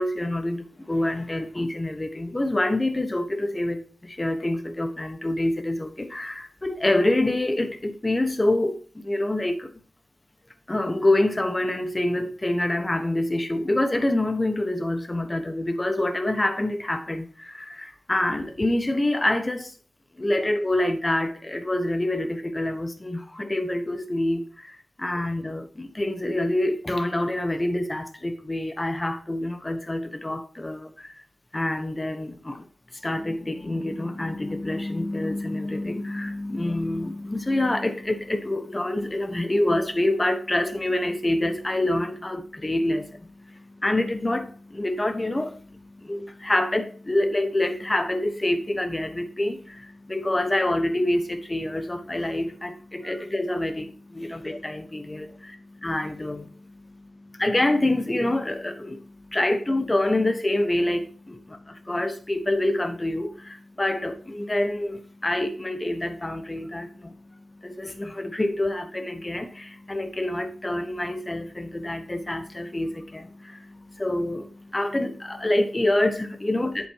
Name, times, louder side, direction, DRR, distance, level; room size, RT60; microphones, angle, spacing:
voice 1, 0.0-9.7 10.7-19.7 20.2-31.2 31.5-32.6 33.0-67.1 67.6-76.9, left 1 dB, 25° left, 1.2 m, -26 dB
8.3 x 7.3 x 2.9 m
wide cardioid pair, 70°, 0 cm